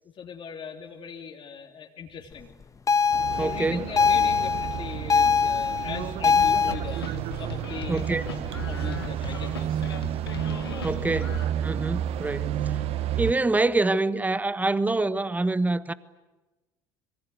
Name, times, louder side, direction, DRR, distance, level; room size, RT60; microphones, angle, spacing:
voice 1, 0.2-2.5 3.3-7.0 7.3-10.0 10.7-11.1 11.7-12.1, left 7 dB, 45° left, 3.5 m, -40 dB
sound 1, 2.9-6.7, left 5 dB, 25° left, 1.5 m, -22 dB
sound 2, 3.1-13.3, right 11 dB, 55° right, 1.2 m, -31 dB
voice 2, 3.4-3.8 7.9-8.3 10.8-11.4 11.6-12.8 13.2-15.9, right 2 dB, 15° right, 1.3 m, -26 dB
sound 3, 6.4-11.4, left 6 dB, 90° left, 1.9 m, -38 dB
26.0 x 23.5 x 9.5 m
hypercardioid pair, 65°, 12 cm